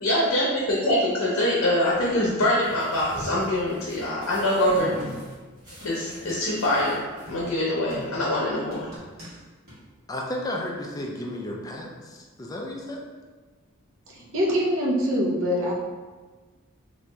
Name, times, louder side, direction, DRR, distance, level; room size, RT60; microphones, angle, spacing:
voice 1, 0.0-4.9 5.8-8.9, left 1 dB, 80° left, -5 dB, 0.7 m, -24 dB
sound 1, 1.9-9.0, equal, 15° right, 1.5 m, -43 dB
sound 2, 5.0-5.4 5.8-6.5 6.8-6.9 7.3-7.5 7.9-8.3 8.7-9.4 9.7-9.8, equal, 45° right, 1.5 m, -42 dB
voice 2, 10.1-13.0, left 1 dB, 15° left, -1 dB, 0.4 m, -33 dB
voice 3, 14.1-15.7, equal, 70° right, -3 dB, 0.7 m, -24 dB
2.9 x 2.5 x 3.3 m, 1.3 s
head